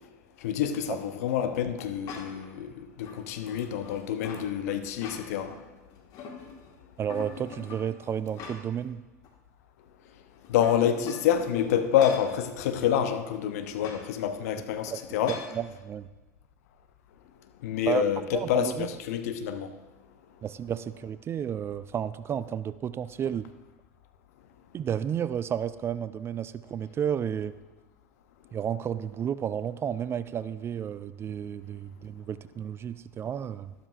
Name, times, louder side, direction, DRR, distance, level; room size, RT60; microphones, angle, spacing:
voice 1, 0.4-5.5 10.5-15.4 17.6-19.7, left 9 dB, 65° left, 0.8 m, -27 dB
sound 1, 2.1-2.5 3.0-4.5 4.9-5.6 5.9-6.7 7.1-8.9 9.2-9.3 10.4-12.3 13.8-14.1 15.3-15.6, left 5 dB, 45° left, 1.6 m, -43 dB
voice 2, 7.0-9.0 14.9-15.0 15.3-16.1 17.9-18.0 18.3-18.9 20.4-23.5 24.7-27.5 28.5-33.7, right 8 dB, 30° right, 0.4 m, -32 dB
12.0 x 12.0 x 2.5 m
hypercardioid pair, 80°, 9 cm